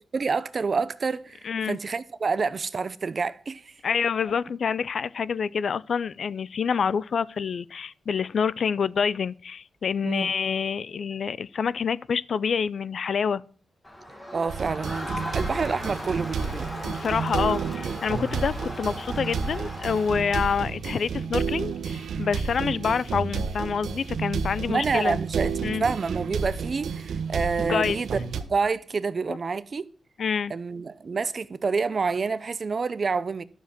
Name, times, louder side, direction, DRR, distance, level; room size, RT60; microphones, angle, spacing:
voice 1, 0.1-3.7 10.0-10.3 14.3-16.7 24.7-25.5 25.8-28.2 28.5-29.9 30.5-33.4, right 4 dB, 40° right, 0.7 m, -28 dB
voice 2, 1.4-1.8 3.8-13.4 16.8-25.2 25.6-25.8 27.7-28.0 29.3-29.4 30.2-30.5, left 6 dB, 60° left, 0.5 m, -27 dB
Crowd, 13.8-20.7, equal, 15° left, 2.5 m, -38 dB
sound 1, 14.5-28.4, right 6 dB, 90° right, 1.3 m, -31 dB
12.0 x 7.3 x 6.0 m
wide cardioid pair, 115°, 0 cm